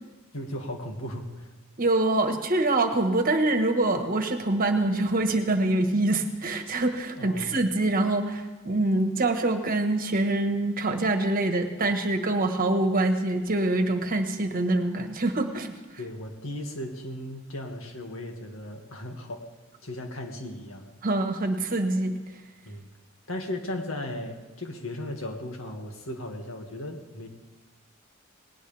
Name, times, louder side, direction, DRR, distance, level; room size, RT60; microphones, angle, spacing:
voice 1, 0.3-1.5 7.2-7.6 16.0-19.4 19.8-20.9 22.7-22.9 23.3-27.3, left 1 dB, 75° left, 3 dB, 2.0 m, -36 dB
voice 2, 1.8-15.7 21.0-22.1, right 2 dB, 45° right, 6 dB, 1.4 m, -25 dB
19.0 x 18.0 x 3.4 m, 1.2 s
head